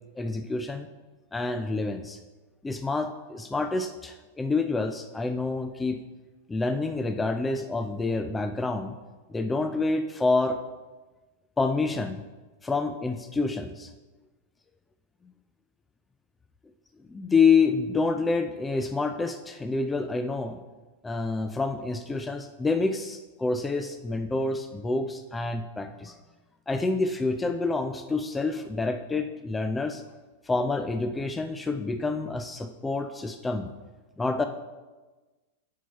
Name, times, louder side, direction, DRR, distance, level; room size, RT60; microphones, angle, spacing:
voice 1, 0.2-0.9 1.3-2.2 2.6-6.0 6.5-8.9 9.3-10.6 11.6-12.2 12.6-13.9 17.1-20.6 21.0-26.1 26.7-30.0 30.5-33.7 34.2-34.4, left 3 dB, 15° left, 8 dB, 0.5 m, -27 dB
7.4 x 5.7 x 5.5 m, 1.2 s
figure-of-eight pair, 100°, 0 cm